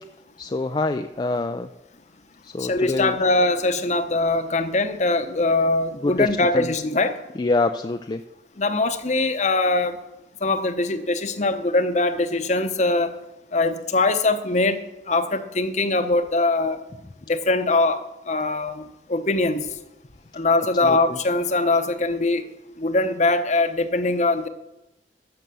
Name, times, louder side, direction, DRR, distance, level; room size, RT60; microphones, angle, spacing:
voice 1, 0.4-1.7 2.4-3.1 6.0-6.3 6.5-6.7 7.4-8.2 20.8-21.0, left 2 dB, 25° left, 7 dB, 0.4 m, -25 dB
voice 2, 2.6-7.2 8.6-10.0 10.4-13.1 13.5-14.8 15.1-16.8 17.3-18.0 18.3-18.8 19.1-19.6 20.3-22.4 22.8-24.5, left 2 dB, 40° left, 10 dB, 0.9 m, -22 dB
13.5 x 6.9 x 6.9 m, 0.93 s
head